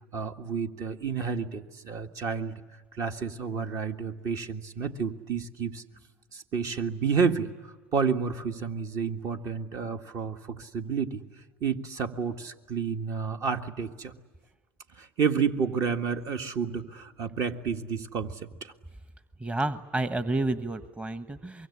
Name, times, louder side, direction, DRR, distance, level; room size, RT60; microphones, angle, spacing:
voice 1, 0.1-2.6 3.0-5.8 6.3-11.2 11.6-14.1 15.0-18.7, right 6 dB, 50° right, 6 dB, 1.7 m, -30 dB
voice 2, 19.4-21.7, right 2 dB, 15° right, 11 dB, 1.2 m, -30 dB
24.5 x 23.0 x 9.9 m, 1.3 s
hypercardioid pair, 85°, 7 cm